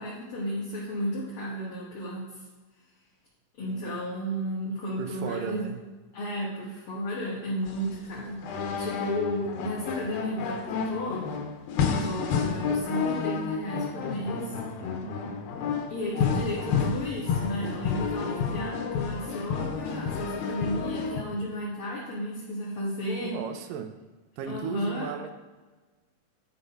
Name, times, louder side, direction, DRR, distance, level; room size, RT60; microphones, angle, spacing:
voice 1, 0.0-2.4 3.6-5.7 6.1-11.2 11.9-14.6 15.9-23.4 24.5-25.1, equal, 45° left, -7 dB, 2.0 m, -33 dB
voice 2, 5.0-5.8 14.8-15.4 23.2-24.0 24.4-25.3, right 7 dB, 75° right, 6 dB, 2.2 m, -36 dB
sound 1, 7.7-21.2, left 5 dB, 90° left, 2.7 m, -30 dB
11.5 x 4.0 x 5.4 m, 1.3 s
omnidirectional pair, 4.2 m